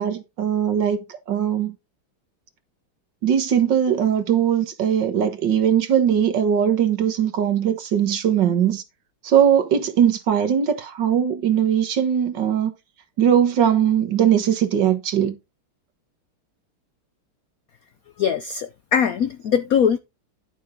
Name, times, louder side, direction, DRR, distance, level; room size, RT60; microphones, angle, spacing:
voice 1, 0.0-1.7 3.2-8.8 9.2-12.7 13.2-15.4, right 9 dB, 60° right, 1.9 m, -20 dB
voice 2, 18.2-20.0, left 7 dB, 70° left, 0.8 m, -21 dB
11.0 x 7.0 x 3.7 m
omnidirectional pair, 2.2 m